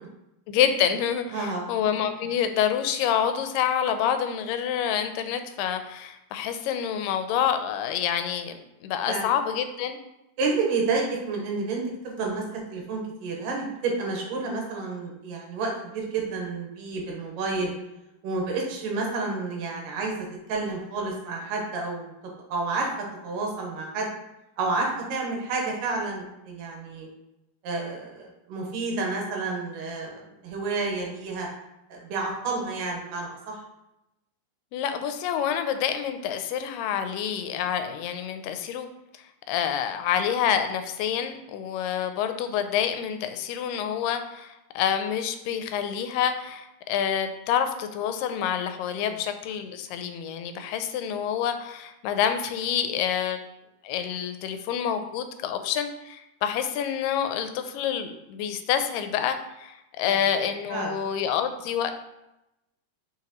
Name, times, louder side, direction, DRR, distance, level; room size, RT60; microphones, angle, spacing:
voice 1, 0.5-10.0 34.7-38.9 39.5-53.4 53.8-61.9, left 9 dB, 90° left, 8 dB, 2.2 m, -27 dB
voice 2, 1.3-1.6 9.0-9.3 10.4-17.7 18.2-22.1 22.5-22.9 23.2-24.1 24.6-27.1 27.6-31.5 31.9-33.6 49.0-49.2 60.0-60.2 60.7-61.0, right 3 dB, 80° right, 0 dB, 2.8 m, -30 dB
5.6 x 5.6 x 3.0 m, 0.90 s
omnidirectional pair, 3.8 m